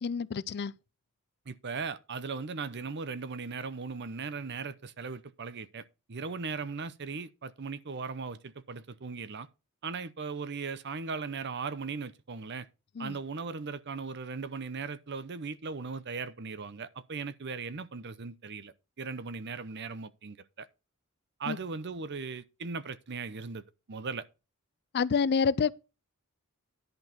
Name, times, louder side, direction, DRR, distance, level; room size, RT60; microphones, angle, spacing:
voice 1, 0.0-0.7 13.0-13.2 21.5-21.6 24.9-25.7, left 5 dB, 50° left, 0.4 m, -28 dB
voice 2, 1.5-9.5 9.8-12.7 13.0-20.7 21.4-24.3, right 4 dB, 55° right, 0.7 m, -38 dB
11.0 x 4.7 x 5.8 m
head